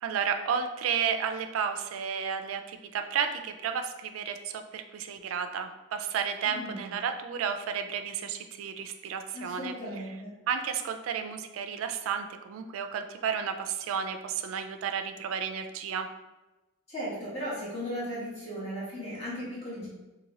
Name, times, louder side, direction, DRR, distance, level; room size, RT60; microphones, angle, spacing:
voice 1, 0.0-9.7 10.5-16.1, right 7 dB, 80° right, 8 dB, 0.3 m, -32 dB
voice 2, 6.5-6.8 9.3-10.3 16.9-19.9, equal, 30° left, -8 dB, 0.9 m, -36 dB
2.7 x 2.6 x 2.9 m, 1.1 s
head